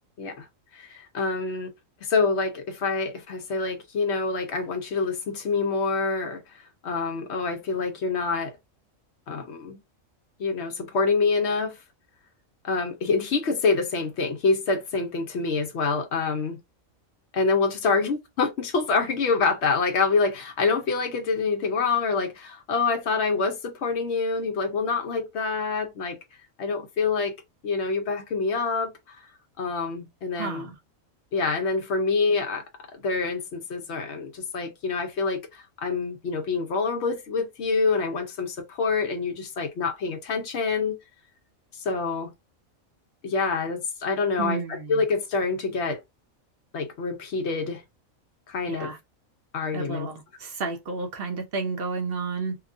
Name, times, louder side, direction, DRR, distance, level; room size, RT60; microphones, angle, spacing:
voice 1, 0.7-1.7 2.0-6.4 6.8-8.5 9.3-9.8 10.4-11.8 12.6-16.6 17.3-26.2 26.6-27.4 27.6-28.9 29.6-30.7 31.3-32.6 32.9-41.0 41.8-42.3 43.2-46.0 46.7-47.8 48.5-48.9 49.5-50.1, left 4 dB, 60° left, 0.8 m, -26 dB
voice 2, 30.3-30.8 44.4-45.0 48.7-49.0 49.7-52.6, right 4 dB, 55° right, 0.7 m, -31 dB
2.9 x 2.2 x 2.5 m
omnidirectional pair, 1.4 m